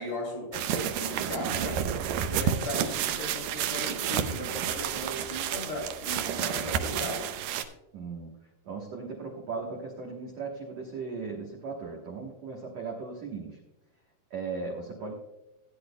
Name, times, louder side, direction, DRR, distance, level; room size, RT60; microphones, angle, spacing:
voice 1, 0.0-1.9 2.3-7.3, left 1 dB, 40° left, -1 dB, 3.7 m, -37 dB
sound 1, 0.5-7.6, right 9 dB, 85° right, 2.1 m, -30 dB
voice 2, 7.9-8.3 8.7-13.6 14.3-15.1, right 4 dB, 60° right, -1 dB, 1.8 m, -37 dB
17.0 x 10.0 x 2.2 m, 0.96 s
omnidirectional pair, 4.7 m